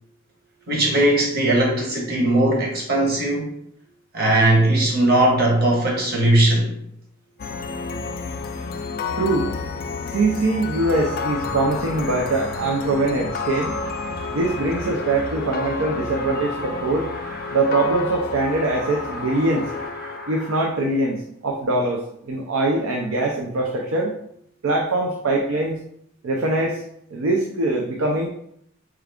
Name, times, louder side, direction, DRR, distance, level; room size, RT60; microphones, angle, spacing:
voice 1, 0.7-3.5 4.1-6.7, right 1 dB, 50° right, -2 dB, 1.1 m, -19 dB
sound 1, 7.4-20.7, left 5 dB, 45° left, 0.3 m, -31 dB
voice 2, 9.2-9.5 10.1-13.7 14.3-17.1 17.5-19.7 20.3-24.2 24.6-25.8 26.2-26.8 27.1-28.3, right 2 dB, 80° right, 1 dB, 0.5 m, -22 dB
sound 2, 10.8-20.6, equal, 5° right, 0.6 m, -36 dB
4.6 x 2.4 x 3.4 m, 0.72 s
head